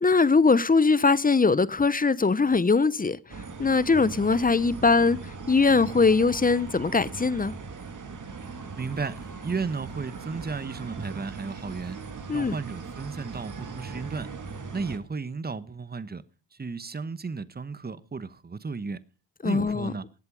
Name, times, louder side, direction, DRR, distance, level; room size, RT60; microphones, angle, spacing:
voice 1, 0.0-3.2 3.6-5.2 5.5-7.5 12.3-12.5 19.4-19.9, left 4 dB, 20° left, 0.8 m, -21 dB
sound 1, 3.3-15.0, right 4 dB, 40° right, 2.4 m, -39 dB
voice 2, 8.8-12.0 12.3-14.3 14.7-16.2 16.6-19.0 19.4-20.0, right 4 dB, 20° right, 1.1 m, -34 dB
19.0 x 8.0 x 5.2 m
supercardioid pair, 60°, 45 cm